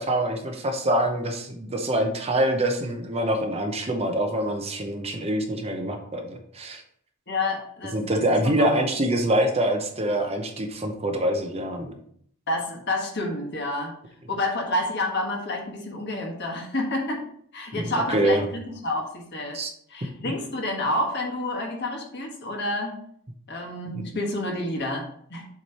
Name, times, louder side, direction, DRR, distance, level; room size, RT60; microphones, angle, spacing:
voice 1, 0.0-6.8 7.9-12.0 17.7-18.5 19.5-19.7 20.2-20.3 23.9-24.1, right 1 dB, 30° right, 4 dB, 0.8 m, -25 dB
voice 2, 7.3-8.2 8.6-8.7 12.5-13.9 14.3-17.3 17.5-19.6 19.9-23.0 23.5-25.5, left 1 dB, 55° left, 1 dB, 1.4 m, -29 dB
7.2 x 3.2 x 4.2 m, 0.64 s
head